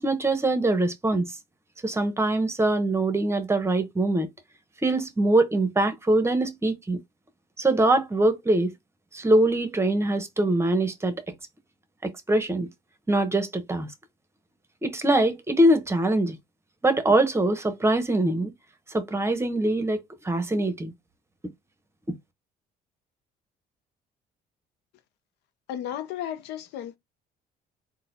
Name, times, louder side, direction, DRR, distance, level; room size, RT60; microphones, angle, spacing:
voice 1, 0.0-1.3 1.8-4.3 4.8-7.0 7.6-8.7 9.1-11.2 12.0-12.7 13.1-13.9 14.8-16.4 16.8-18.5 18.9-20.9 22.1-22.2, right 2 dB, 15° right, 0.9 m, -23 dB
voice 2, 25.7-27.0, left 10 dB, 85° left, 0.6 m, -34 dB
4.0 x 2.2 x 3.9 m
cardioid pair, 110°, 17 cm